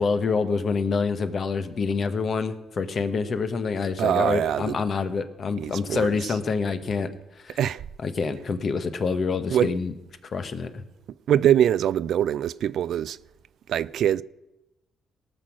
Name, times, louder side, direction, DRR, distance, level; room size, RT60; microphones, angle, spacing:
voice 1, 0.0-7.1 7.4-7.6 8.0-9.9 10.3-10.8, left 4 dB, 50° left, 1.1 m, -26 dB
voice 2, 4.0-4.8 5.6-6.3 7.6-7.8 9.5-9.7 11.3-13.2 13.7-14.2, right 10 dB, 70° right, 0.3 m, -23 dB
18.0 x 6.3 x 6.1 m
cardioid pair, 90°, 0 cm